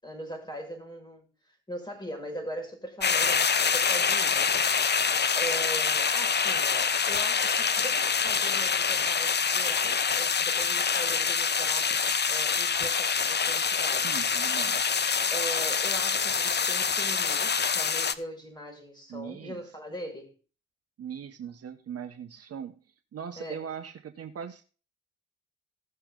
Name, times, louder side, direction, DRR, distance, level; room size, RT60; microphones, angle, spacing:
voice 1, 0.0-1.3 1.7-4.4 5.3-11.9 12.3-14.1 15.3-20.3 23.4-23.7, right 1 dB, 15° left, 5.9 m, -40 dB
sound 1, 3.0-18.1, left 6 dB, 35° left, 0.9 m, -26 dB
voice 2, 14.0-14.8 19.1-19.6 21.0-22.8 23.1-24.6, right 8 dB, 55° right, 1.1 m, -39 dB
16.5 x 6.8 x 3.8 m
hypercardioid pair, 45°, 30 cm